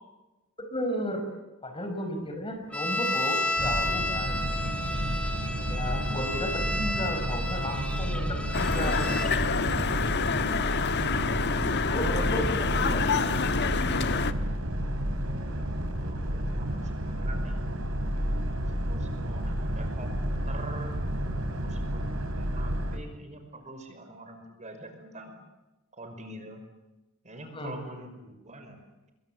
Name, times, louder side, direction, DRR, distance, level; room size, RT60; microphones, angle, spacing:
voice 1, 0.6-1.2 1.6-4.4 5.6-9.1 11.8-13.5 27.5-27.8, left 1 dB, 25° left, 5 dB, 5.3 m, -34 dB
sound 1, 2.7-9.3, left 1 dB, 5° left, 2.3 m, -32 dB
Boat Water vehicle, 3.6-23.0, equal, 80° right, 4.2 m, -31 dB
sound 2, 8.5-14.3, left 5 dB, 55° left, 1.4 m, -27 dB
voice 2, 16.0-17.6 18.8-21.0 21.5-25.4 25.9-26.6 27.2-29.1, right 2 dB, 35° right, 6 dB, 5.5 m, -45 dB
27.0 x 23.0 x 8.8 m, 1.0 s
head